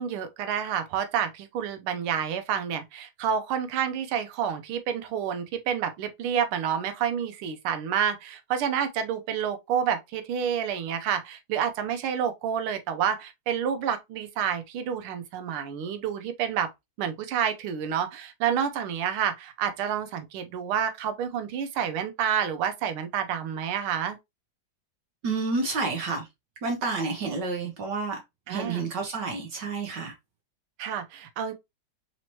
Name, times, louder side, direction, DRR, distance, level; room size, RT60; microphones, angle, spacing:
voice 1, 0.0-16.7 17.0-24.2 27.2-27.4 28.5-28.9 30.8-31.6, right 8 dB, 85° right, 1.6 m, -29 dB
voice 2, 25.2-26.3 26.6-28.2 28.5-30.1, right 3 dB, 65° right, 1.3 m, -29 dB
4.1 x 3.0 x 2.8 m
omnidirectional pair, 2.3 m